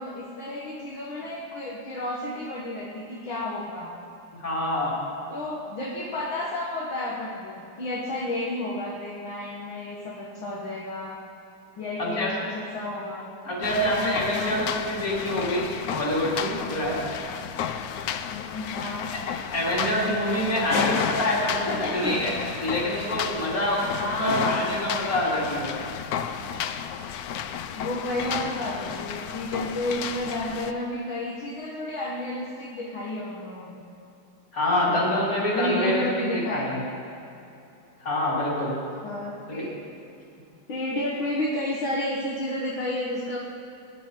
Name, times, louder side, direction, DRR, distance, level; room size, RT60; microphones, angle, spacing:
voice 1, 0.0-3.9 5.3-11.2 11.7-13.3 14.3-14.6 18.3-19.1 21.5-22.2 24.0-24.7 27.7-33.8 34.8-35.0 35.3-36.8 39.0-39.8 40.7-43.4, left 1 dB, 70° left, -5 dB, 2.2 m, -31 dB
voice 2, 4.3-5.0 12.0-12.3 13.4-17.0 19.1-19.2 19.5-22.3 22.6-23.8 24.2-25.7 34.5-36.8 38.0-38.8 39.5-39.6, left 1 dB, 40° left, -6 dB, 3.9 m, -26 dB
sound 1, 13.6-30.7, left 8 dB, 90° left, 0.8 m, -32 dB
21.5 x 10.5 x 4.6 m, 2.7 s
omnidirectional pair, 2.3 m